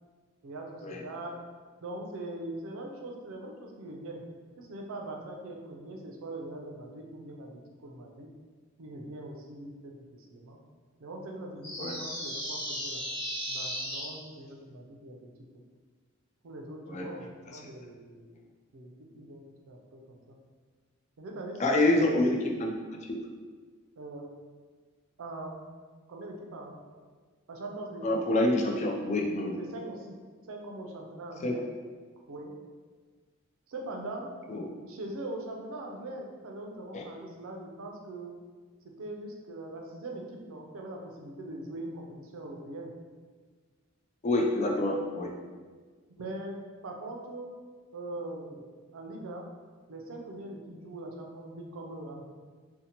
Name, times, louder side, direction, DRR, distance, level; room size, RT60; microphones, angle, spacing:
voice 1, 0.4-1.3 1.8-4.2 4.6-8.3 8.8-10.0 10.3-10.6 11.0-13.0 13.5-15.3 16.4-18.4 18.7-20.4 21.2-22.0 24.0-24.3 25.2-25.6 26.1-26.8 27.5-28.1 29.6-30.2 30.5-31.6 32.3-32.5 33.7-34.3 34.8-38.3 39.0-42.9 46.1-46.6 46.8-47.5 47.9-48.7 48.9-49.5 49.9-52.3, right 2 dB, 80° right, 1 dB, 0.4 m, -41 dB
sound 1, 11.6-14.1, equal, 55° left, 0.9 m, -35 dB
voice 2, 21.6-22.8 23.1-23.3 28.0-29.6 31.4-31.5 34.5-34.7 36.9-37.0 44.2-45.3, left 1 dB, 35° left, 0 dB, 0.3 m, -27 dB
2.7 x 2.0 x 2.8 m, 1.5 s
head